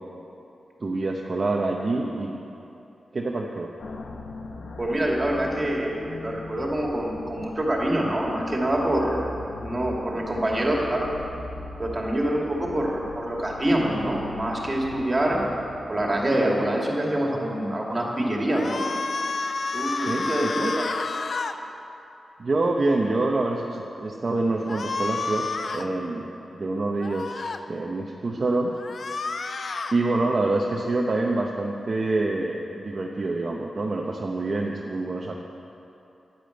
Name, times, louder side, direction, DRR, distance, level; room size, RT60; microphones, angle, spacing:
voice 1, 0.8-2.3 3.1-3.7 19.9-20.7 22.4-28.7 29.9-35.3, right 2 dB, 45° right, 0 dB, 0.9 m, -26 dB
sound 1, 3.8-16.9, left 3 dB, 70° left, 1.2 m, -40 dB
voice 2, 4.8-9.3 9.6-11.1 11.8-15.4 15.9-18.8 19.7-20.9, right 1 dB, 25° right, -2 dB, 2.5 m, -25 dB
sound 2, 18.5-21.6 24.7-25.9 27.0-27.6 28.8-30.0, left 3 dB, 55° left, 0.6 m, -30 dB
10.5 x 10.5 x 7.9 m, 2.9 s
wide cardioid pair, 110°, 0 cm